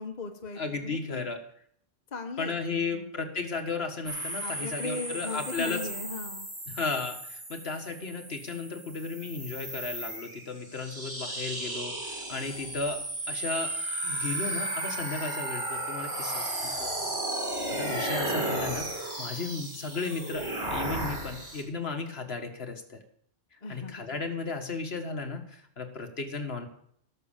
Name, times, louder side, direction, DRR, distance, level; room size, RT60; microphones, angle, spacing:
voice 1, 0.0-1.3 2.1-3.1 4.4-6.5 23.6-24.1, left 3 dB, 40° left, 4 dB, 1.3 m, -38 dB
voice 2, 0.6-1.4 2.4-5.9 6.7-13.0 13.3-13.7 14.0-16.9 17.7-23.0 23.7-26.7, left 4 dB, 60° left, 5 dB, 1.8 m, -35 dB
sound 1, 4.1-21.6, right 1 dB, 60° right, 4.8 m, -34 dB
17.5 x 6.4 x 7.3 m, 0.67 s
omnidirectional pair, 1.2 m